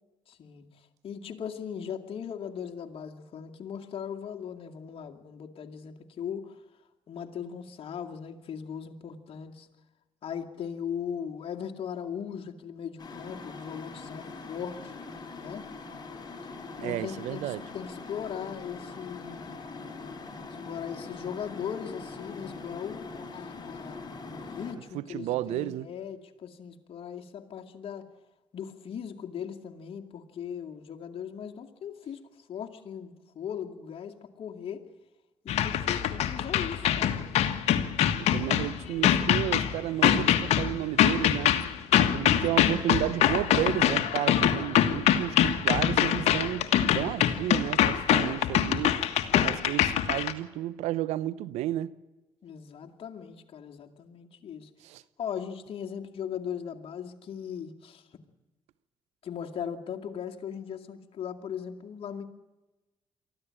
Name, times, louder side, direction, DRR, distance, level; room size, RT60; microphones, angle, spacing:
voice 1, 0.3-0.6 1.0-6.6 7.1-9.7 10.2-14.9 15.4-15.7 16.8-19.4 20.7-28.1 28.5-32.2 32.5-34.8 35.4-37.2 52.4-54.7 55.2-58.0 59.2-62.2, left 8 dB, 55° left, 2.3 m, -38 dB
sound 1, 13.0-24.7, left 3 dB, 40° left, 4.7 m, -42 dB
voice 2, 16.8-17.6 24.9-25.9 38.2-41.6 42.0-46.7 46.9-49.0 49.4-51.9 54.8-55.0, right 14 dB, 80° right, 0.8 m, -32 dB
sound 2, 35.5-50.3, left 10 dB, 70° left, 1.5 m, -24 dB
23.5 x 14.5 x 8.8 m
supercardioid pair, 55°, 11 cm